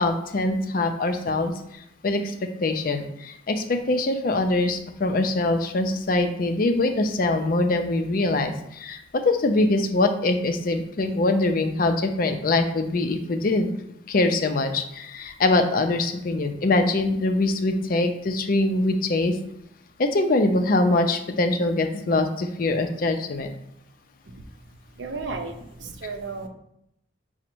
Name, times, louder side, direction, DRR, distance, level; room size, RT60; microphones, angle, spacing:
voice 1, 0.0-1.5 2.0-2.3 2.6-13.7 14.1-19.3 20.0-23.5, left 2 dB, 45° left, 6 dB, 0.4 m, -23 dB
voice 2, 24.9-26.5, right 3 dB, 65° right, 4 dB, 0.6 m, -34 dB
4.9 x 2.1 x 4.5 m, 0.76 s
head